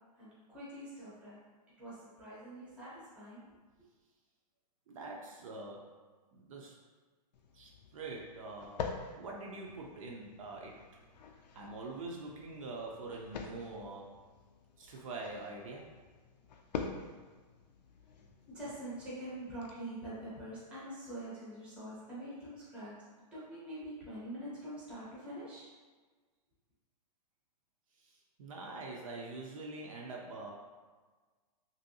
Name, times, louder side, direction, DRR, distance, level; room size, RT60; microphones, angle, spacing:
voice 1, 0.2-1.4 1.8-3.4 18.5-22.9 23.3-25.7, right 1 dB, 5° right, -9 dB, 0.6 m, -45 dB
voice 2, 4.9-5.9 6.3-6.8 7.5-8.9 9.2-10.9 11.5-14.2 14.8-16.0 28.0-30.5, right 3 dB, 50° right, -1 dB, 0.4 m, -44 dB
sound 1, 7.3-19.7, left 5 dB, 80° left, 0.4 m, -47 dB
2.9 x 2.6 x 2.7 m, 1.4 s
hypercardioid pair, 165°, 21 cm